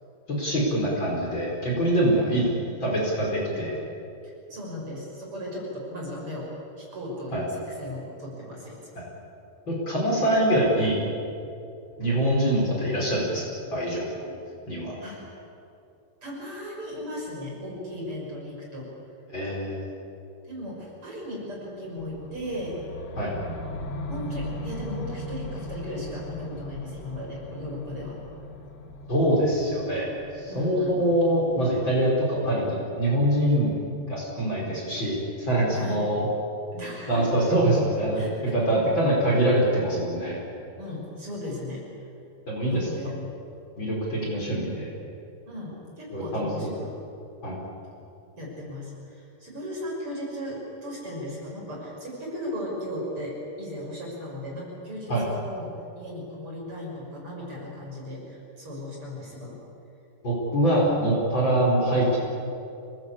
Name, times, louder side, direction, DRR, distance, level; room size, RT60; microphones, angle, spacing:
voice 1, 0.3-2.4 2.8-3.7 7.3-7.4 9.7-11.0 12.0-13.4 13.7-14.2 14.7-15.0 19.3-19.9 23.2-23.3 29.1-30.1 30.3-33.8 34.1-36.3 37.1-38.2 38.5-40.4 42.5-42.9 43.8-44.9 46.1-46.7 47.4-47.6 55.1-55.2 60.2-62.2, right 1 dB, 30° left, -4 dB, 5.6 m, -24 dB
voice 2, 4.2-8.8 15.0-15.3 16.2-18.9 20.4-22.8 24.1-28.2 30.5-31.0 35.7-36.0 36.7-37.3 38.1-38.9 40.8-41.9 42.7-43.1 45.5-46.9 48.4-59.6, left 1 dB, 35° right, -3 dB, 6.7 m, -36 dB
sound 1, 22.0-32.0, left 1 dB, 55° left, 2.9 m, -38 dB
27.0 x 19.5 x 8.6 m, 2.7 s
omnidirectional pair, 4.6 m